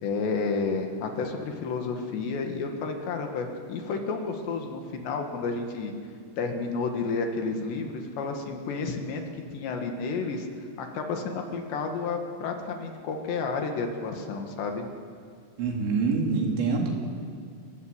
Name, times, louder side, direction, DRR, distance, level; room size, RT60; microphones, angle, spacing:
voice 1, 0.0-5.9 6.4-9.2 9.5-10.5 10.8-14.9, left 4 dB, 65° left, 3 dB, 3.9 m, -31 dB
voice 2, 15.6-16.9, right 4 dB, 70° right, 1 dB, 4.8 m, -25 dB
27.0 x 20.0 x 8.1 m, 2.2 s
omnidirectional pair, 5.6 m